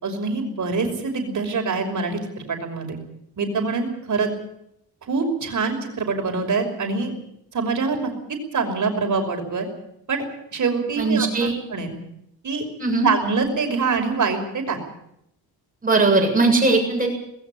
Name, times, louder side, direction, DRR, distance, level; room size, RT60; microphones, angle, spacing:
voice 1, 0.0-3.0 3.4-4.3 5.1-7.1 7.5-8.1 8.5-9.7 10.1-10.2 10.5-12.0 12.4-12.6 13.0-14.8, right 4 dB, 50° right, 4 dB, 5.8 m, -24 dB
voice 2, 11.0-11.5 12.8-13.1 15.8-17.1, right 3 dB, 20° right, 1 dB, 7.4 m, -19 dB
20.0 x 17.0 x 8.7 m, 0.78 s
cardioid pair, 130°, 40 cm